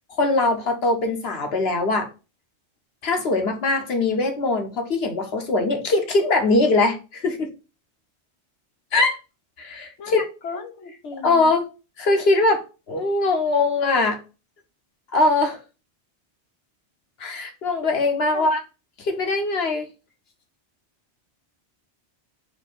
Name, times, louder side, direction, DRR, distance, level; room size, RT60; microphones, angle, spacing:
voice 1, 0.1-2.1 3.0-7.5 8.9-9.2 9.6-10.2 11.2-11.6 12.0-14.2 15.1-15.6 17.2-18.6 19.0-19.9, left 2 dB, 65° left, 1.2 m, -21 dB
voice 2, 10.0-11.5 18.3-18.5, left 5 dB, 85° left, 1.2 m, -35 dB
4.3 x 2.8 x 4.4 m
omnidirectional pair, 1.2 m